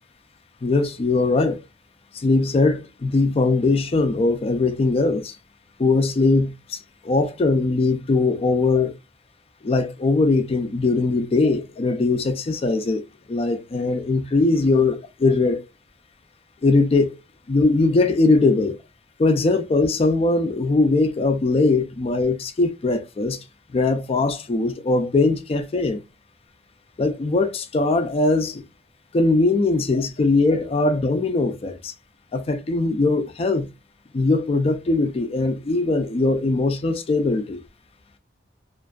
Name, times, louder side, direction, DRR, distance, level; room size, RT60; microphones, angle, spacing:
voice 1, 0.6-1.6 2.1-5.4 5.8-6.8 7.0-8.9 9.6-13.0 13.3-15.6 16.6-17.2 17.5-18.8 19.2-23.4 23.7-26.0 27.0-28.6 29.1-31.9 32.3-33.7 34.1-37.6, left 3 dB, 30° left, 0.3 m, -20 dB
2.5 x 2.3 x 2.2 m
head